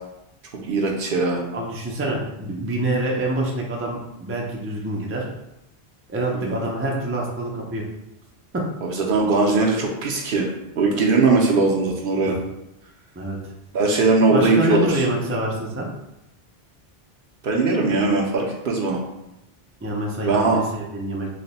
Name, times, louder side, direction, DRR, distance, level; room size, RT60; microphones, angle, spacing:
voice 1, 0.6-1.4 6.3-6.6 8.8-10.5 10.8-12.4 13.7-15.0 17.4-19.0 20.2-20.6, right 3 dB, 65° right, -1 dB, 0.7 m, -20 dB
voice 2, 1.5-5.3 6.1-7.8 8.5-8.6 12.3-12.4 13.2-13.4 14.3-15.9 19.8-21.3, right 1 dB, 20° right, -2 dB, 0.4 m, -26 dB
3.2 x 2.1 x 4.0 m, 0.88 s
omnidirectional pair, 1.0 m